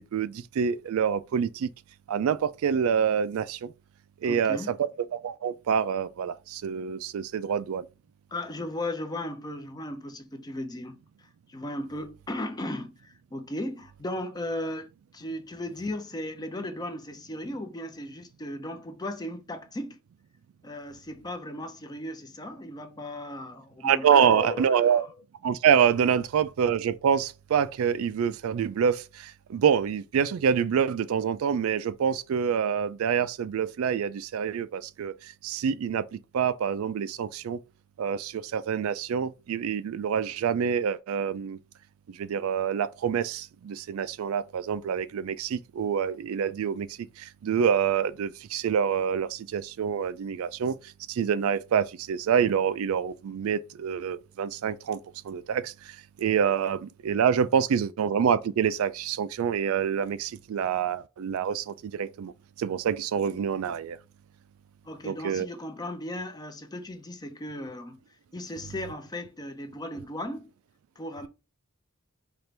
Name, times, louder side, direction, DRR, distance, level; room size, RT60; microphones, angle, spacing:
voice 1, 0.1-1.7 2.1-3.7 4.2-7.8 23.8-25.0 25.4-35.1 35.4-36.1 36.3-37.6 38.0-41.6 42.2-46.9 47.2-50.7 51.1-55.0 55.2-55.7 56.2-62.3 62.6-64.0 65.0-65.5, right 7 dB, 75° right, 0.3 m, -26 dB
voice 2, 4.2-4.7 8.3-20.0 20.6-25.1 64.8-68.0 68.3-70.5 71.0-71.3, left 1 dB, 20° left, 0.5 m, -36 dB
4.4 x 2.5 x 3.2 m
head